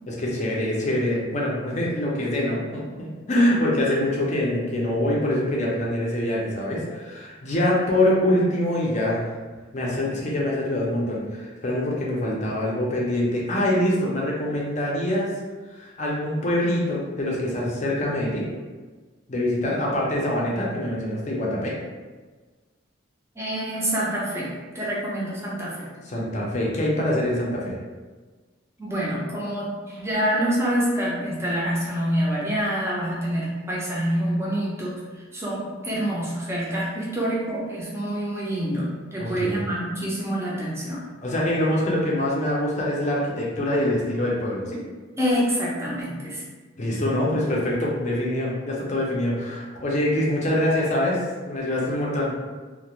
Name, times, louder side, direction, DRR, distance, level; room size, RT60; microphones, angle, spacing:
voice 1, 0.1-9.3 9.7-15.3 15.7-18.5 19.3-21.7 26.1-27.7 39.2-39.7 41.2-44.8 46.8-51.2 51.5-52.3, left 1 dB, 35° left, -4 dB, 0.5 m, -24 dB
voice 2, 23.4-25.9 28.8-41.1 45.2-46.4, equal, 15° right, -6 dB, 0.5 m, -27 dB
2.4 x 2.1 x 2.9 m, 1.3 s
head